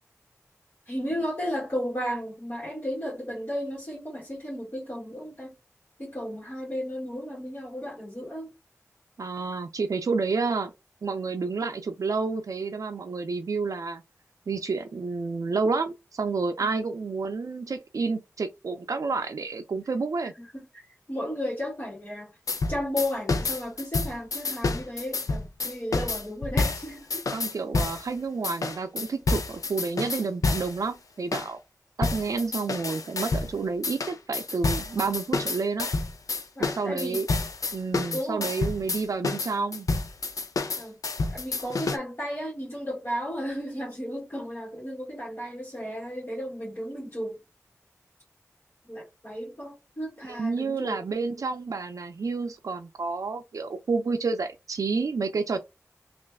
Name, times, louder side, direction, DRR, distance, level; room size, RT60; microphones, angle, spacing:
voice 1, 0.9-5.5 6.0-8.5 16.6-16.7 20.2-20.8 21.1-22.3 22.7-27.2 36.5-37.2 38.1-38.5 40.8-40.9 41.3-47.4 48.8-51.0, equal, 40° left, 1.6 m, -34 dB
voice 2, 9.2-10.7 11.0-14.0 14.5-20.3 27.3-31.6 32.0-35.9 36.6-37.3 37.7-39.9 50.3-55.6, right 4 dB, 80° right, 0.4 m, -29 dB
sound 1, 22.5-28.1 28.4-30.8 31.3-31.5 32.0-33.5 33.8-42.0, left 3 dB, 85° left, 0.5 m, -29 dB
3.1 x 2.5 x 3.4 m
wide cardioid pair, 70°, 6 cm